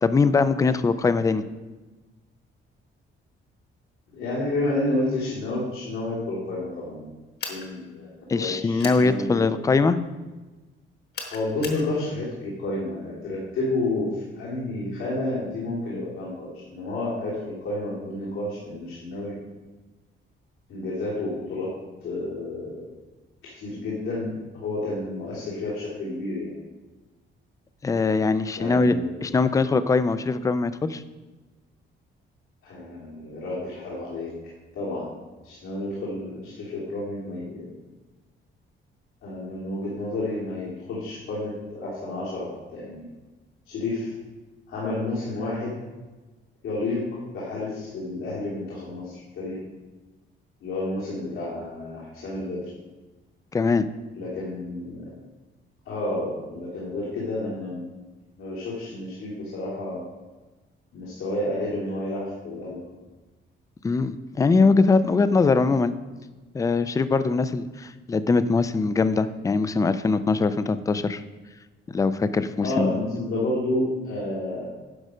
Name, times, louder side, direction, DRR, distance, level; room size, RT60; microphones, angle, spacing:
voice 1, 0.0-1.4 8.3-10.0 27.8-28.9 29.2-31.0 53.5-53.9 63.8-65.9 66.5-71.2 71.9-73.0, left 4 dB, 15° left, 13 dB, 0.4 m, -22 dB
voice 2, 4.1-7.1 7.5-9.6 11.3-19.3 20.7-22.8 23.4-26.5 28.6-29.4 32.6-34.3 34.7-35.1 35.4-37.8 39.2-43.0 43.7-44.1 44.7-45.8 46.6-49.6 50.6-52.7 54.1-55.1 55.8-57.8 58.4-60.0 60.9-62.8 72.6-74.7, left 2 dB, 85° left, -9 dB, 3.1 m, -30 dB
sound 1, 7.4-7.7 8.8-9.0 11.1-11.8, left 5 dB, 50° left, 1.4 m, -35 dB
11.0 x 6.4 x 5.0 m, 1.2 s
cardioid pair, 160°, 21 cm